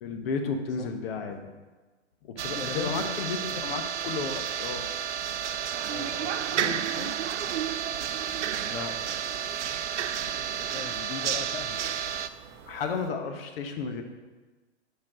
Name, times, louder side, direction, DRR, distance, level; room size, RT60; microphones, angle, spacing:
voice 1, 0.0-1.5 2.2-4.9 8.7-8.9 12.7-14.0, left 5 dB, 55° left, 6 dB, 1.1 m, -33 dB
sound 1, 2.4-12.3, right 9 dB, 80° right, 0.5 m, -31 dB
voice 2, 2.5-3.6 5.9-7.2 10.4-11.8, left 9 dB, 70° left, 8 dB, 0.6 m, -40 dB
sound 2, 5.2-13.1, right 6 dB, 35° right, 0.7 m, -52 dB
7.4 x 4.6 x 4.8 m, 1.3 s
hypercardioid pair, 115°, 36 cm